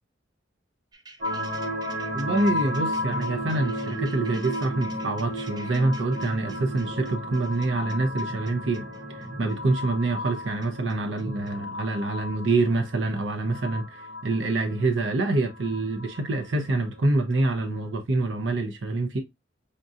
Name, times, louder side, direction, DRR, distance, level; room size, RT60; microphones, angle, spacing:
sound 1, 0.9-11.5, right 1 dB, 20° right, 0.6 m, -44 dB
sound 2, 1.2-17.8, left 1 dB, 45° right, 0.9 m, -34 dB
voice 1, 2.1-8.9 9.2-19.2, right 2 dB, 70° right, 0.6 m, -26 dB
5.1 x 2.6 x 2.4 m
head